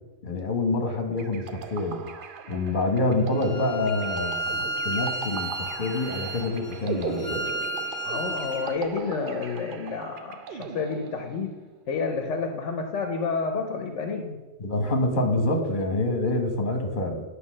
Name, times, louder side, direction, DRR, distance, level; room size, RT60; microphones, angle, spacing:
voice 1, 0.2-2.0 2.5-7.5 14.6-17.2, left 2 dB, 40° left, 4 dB, 1.2 m, -27 dB
sound 1, 1.2-11.6, right 5 dB, 55° right, 0.7 m, -38 dB
Bowed string instrument, 3.3-8.7, right 2 dB, ahead, 1.6 m, -32 dB
voice 2, 8.0-11.5 11.9-14.4, left 4 dB, 70° left, 5 dB, 1.0 m, -30 dB
9.7 x 3.3 x 6.2 m, 1.1 s
omnidirectional pair, 1.3 m